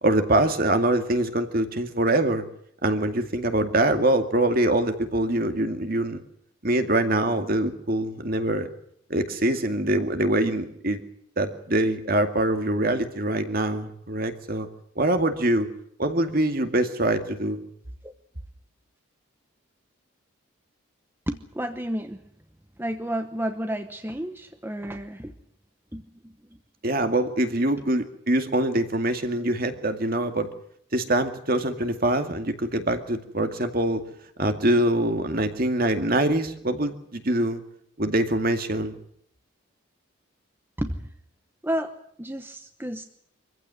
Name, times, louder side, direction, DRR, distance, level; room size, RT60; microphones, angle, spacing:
voice 1, 0.0-2.4 2.8-6.2 6.6-8.7 9.1-11.0 11.4-14.7 15.0-15.7 16.0-17.6 26.8-30.5 30.9-34.0 34.4-37.6 38.0-39.0, right 1 dB, 45° right, 7 dB, 2.2 m, -24 dB
voice 2, 21.3-22.2 22.8-25.3 25.9-26.6 40.8-41.1 41.6-43.0, equal, 10° right, 7 dB, 1.0 m, -31 dB
24.5 x 15.5 x 9.9 m, 0.68 s
head